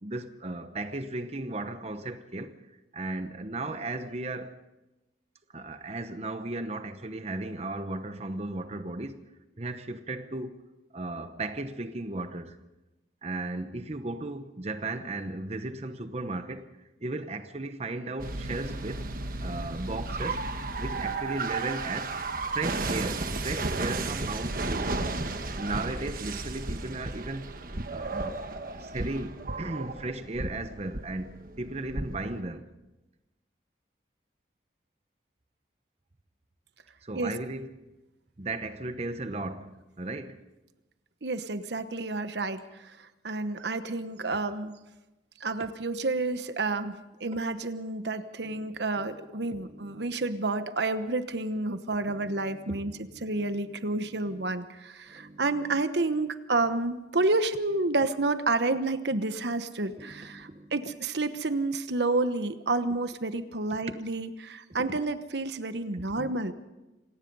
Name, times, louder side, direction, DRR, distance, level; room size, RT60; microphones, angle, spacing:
voice 1, 0.0-2.6 2.9-4.6 5.5-9.2 9.6-10.6 10.9-12.6 13.2-16.7 17.0-19.1 19.4-20.4 20.8-22.2 22.5-25.1 25.6-27.6 27.9-31.3 31.6-32.7 37.0-37.8 38.4-40.4 44.3-44.4 48.4-50.3 52.0-53.8 54.0-54.5 55.1-55.8 59.9-60.8 64.9-65.0 65.9-66.3, right 2 dB, 35° right, 0.9 m, -36 dB
sound 1, 18.2-32.4, right 3 dB, 50° right, 1.3 m, -34 dB
voice 2, 41.2-43.0 43.2-44.8 45.4-52.9 53.2-66.5, right 2 dB, 70° right, 1.1 m, -30 dB
26.5 x 18.0 x 5.5 m
head